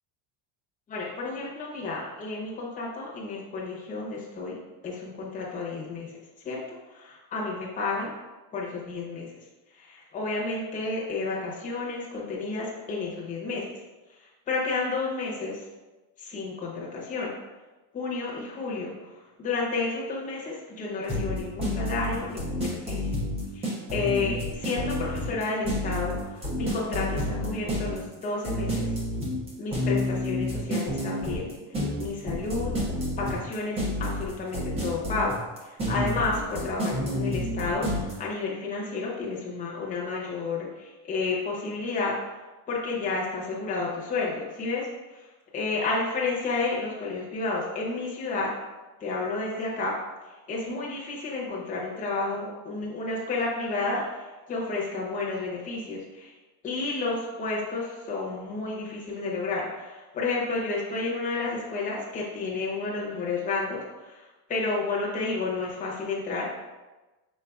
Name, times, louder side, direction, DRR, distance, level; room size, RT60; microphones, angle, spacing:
voice 1, 0.9-6.1 6.4-6.6 6.9-8.1 8.5-9.3 9.8-13.7 14.5-15.6 16.2-17.3 17.9-18.9 19.4-23.0 23.5-28.9 29.6-31.5 32.0-32.7 33.2-35.4 35.6-44.9 45.1-45.3 45.5-48.5 49.0-49.9 50.5-56.3 56.6-66.5, left 3 dB, 15° left, -4 dB, 0.7 m, -31 dB
sound 1, 21.1-38.1, left 1 dB, 15° right, 0.4 m, -29 dB
5.2 x 3.9 x 2.3 m, 1.1 s
cardioid pair, 175°, 48 cm